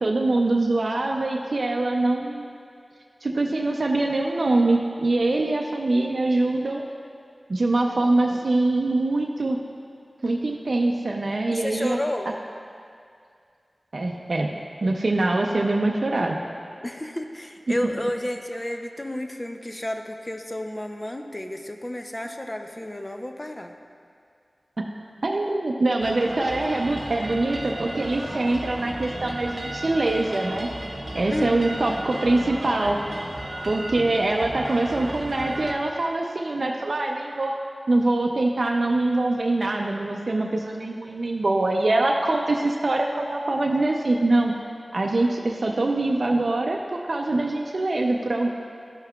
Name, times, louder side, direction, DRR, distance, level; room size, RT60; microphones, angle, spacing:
voice 1, 0.0-2.5 3.2-6.8 7.5-9.6 10.2-12.0 13.9-14.5 14.8-16.4 17.7-17.8 25.2-30.7 31.1-33.0 33.6-37.5 37.9-44.5 44.9-48.5, right 2 dB, 70° right, 0 dB, 0.5 m, -23 dB
voice 2, 11.5-12.3 16.8-23.7 31.3-31.7, left 1 dB, 25° left, 5 dB, 0.5 m, -31 dB
sound 1, 26.0-35.7, right 1 dB, 45° right, 0.9 m, -34 dB
12.5 x 5.6 x 2.3 m, 2.3 s
wide cardioid pair, 50°, 0 cm